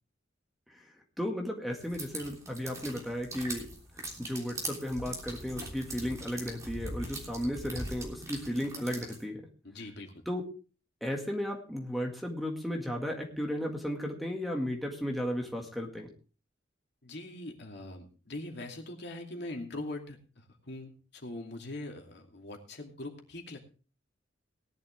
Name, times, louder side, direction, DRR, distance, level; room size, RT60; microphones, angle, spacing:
voice 1, 1.2-3.7 4.2-9.4 10.3-10.4 11.0-16.1, equal, ahead, 0 dB, 1.9 m, -34 dB
sound 1, 1.8-9.2, right 1 dB, 15° right, 3.3 m, -41 dB
voice 2, 9.6-10.2 17.0-23.6, left 2 dB, 60° left, 2 dB, 2.6 m, -42 dB
18.5 x 11.0 x 3.4 m, 0.35 s
head